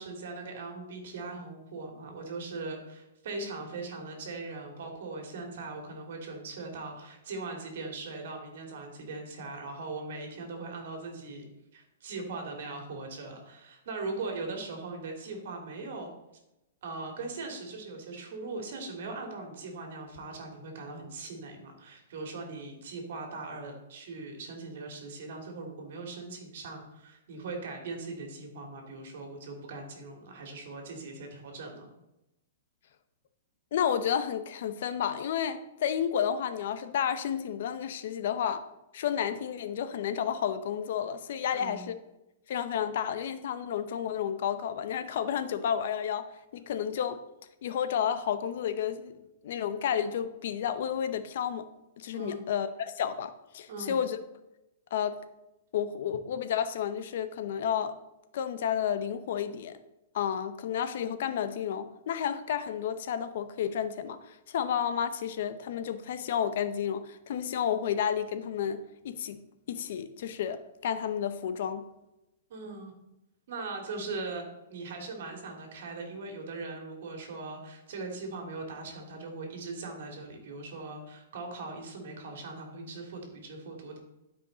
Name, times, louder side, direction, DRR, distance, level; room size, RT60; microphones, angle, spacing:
voice 1, 0.0-11.4 11.7-16.1 16.8-31.9 41.5-41.9 52.1-52.4 53.7-54.0 72.5-72.9 73.5-74.4 74.7-84.0, right 3 dB, 60° right, 2.5 m, -40 dB
voice 2, 33.7-38.7 38.9-41.9 42.5-46.3 46.5-47.2 47.6-51.7 52.0-54.2 54.9-55.2 55.7-58.0 58.3-59.8 60.1-69.4 69.7-71.9, left 8 dB, 55° left, 0.7 m, -31 dB
12.0 x 5.2 x 4.0 m
hypercardioid pair, 165°, 0 cm